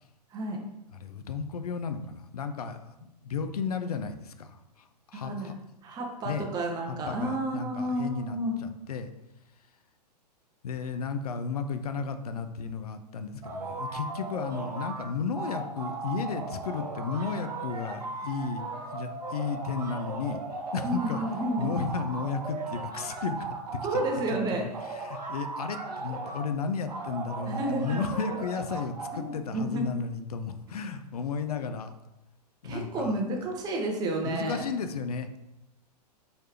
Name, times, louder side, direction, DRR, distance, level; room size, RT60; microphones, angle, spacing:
voice 1, 0.9-2.8 3.2-5.5 6.2-6.5 6.9-9.1 10.6-18.6 18.9-20.4 20.7-21.2 21.6-23.4 23.7-24.0 24.8-31.9 32.6-33.2 34.2-35.3, left 5 dB, 65° left, 9 dB, 0.5 m, -33 dB
voice 2, 5.1-5.5 5.8-8.6 20.8-21.7 23.8-24.6 27.5-28.0 29.1-29.9 32.6-34.7, right 1 dB, 20° right, 1 dB, 0.7 m, -31 dB
sound 1, 13.4-15.1 15.4-24.3 24.7-26.5 26.9-29.2, right 3 dB, 70° right, 0.8 m, -37 dB
4.6 x 3.3 x 2.8 m, 0.90 s
figure-of-eight pair, 105°, 21 cm